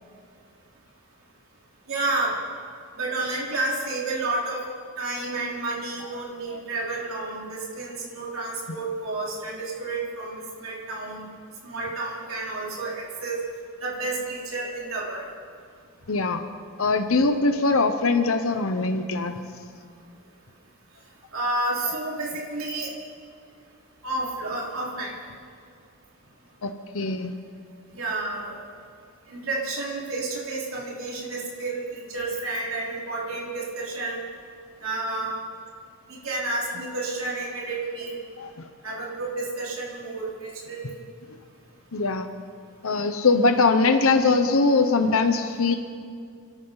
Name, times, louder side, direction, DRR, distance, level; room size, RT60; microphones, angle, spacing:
voice 1, 1.9-2.3 3.0-4.6 5.0-11.3 11.6-13.4 13.8-15.2 21.3-22.9 24.0-25.1 27.9-28.6 29.3-34.2 34.8-35.3 36.2-38.1 38.8-41.0, right 2 dB, 80° right, -5 dB, 4.1 m, -30 dB
voice 2, 16.1-16.4 16.8-19.4 26.6-27.3 38.4-39.0 41.9-42.3 42.8-45.7, left 3 dB, 85° left, 7 dB, 0.9 m, -22 dB
28.0 x 12.5 x 4.0 m, 2.3 s
head